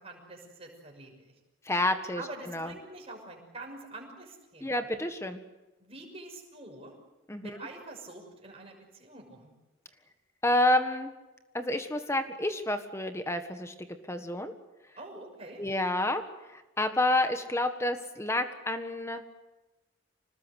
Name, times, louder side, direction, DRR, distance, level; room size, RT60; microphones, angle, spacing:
voice 1, 0.0-1.3 2.1-4.9 5.8-6.9 7.4-9.5 15.0-15.6, right 2 dB, 30° right, 0 dB, 6.3 m, -46 dB
voice 2, 1.7-2.2 2.5-2.7 4.6-5.4 7.3-7.5 10.4-11.1 11.5-13.7 14.1-14.5 15.6-16.2 16.8-19.2, left 1 dB, 15° left, 8 dB, 1.5 m, -29 dB
26.0 x 19.5 x 8.2 m, 1.1 s
head